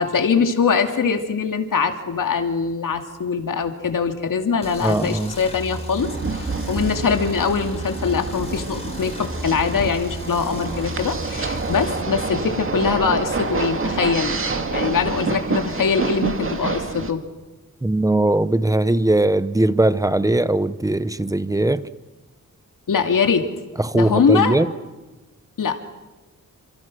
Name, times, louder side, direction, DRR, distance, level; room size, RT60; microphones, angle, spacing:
voice 1, 0.0-14.4 14.7-17.2 22.9-23.5 23.9-24.6 25.6-25.8, left 5 dB, 75° left, 5 dB, 2.7 m, -22 dB
sound 1, 4.6-12.0, left 1 dB, 20° left, 4.0 m, -35 dB
voice 2, 4.8-5.4 17.8-21.9 23.8-24.7, right 2 dB, 10° right, 14 dB, 0.9 m, -20 dB
sound 2, 6.0-17.1, right 4 dB, 40° right, 2.2 m, -27 dB
29.0 x 26.5 x 6.2 m, 1.2 s
wide cardioid pair, 170°, 32 cm